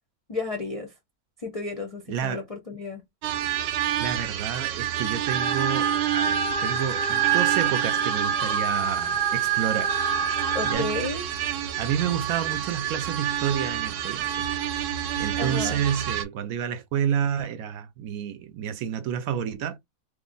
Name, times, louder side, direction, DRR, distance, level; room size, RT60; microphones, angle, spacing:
voice 1, 0.3-0.9 1.4-3.0 10.5-11.3 15.4-15.8, left 3 dB, 40° left, 0.5 m, -32 dB
voice 2, 2.1-2.5 4.0-10.0 10.6-11.0 11.8-14.5 15.2-19.8, right 9 dB, 70° right, 0.9 m, -29 dB
sound 1, 3.2-16.3, right 11 dB, 90° right, 1.1 m, -29 dB
sound 2, 5.3-10.7, right 7 dB, 45° right, 0.6 m, -26 dB
3.1 x 2.1 x 3.8 m
omnidirectional pair, 1.6 m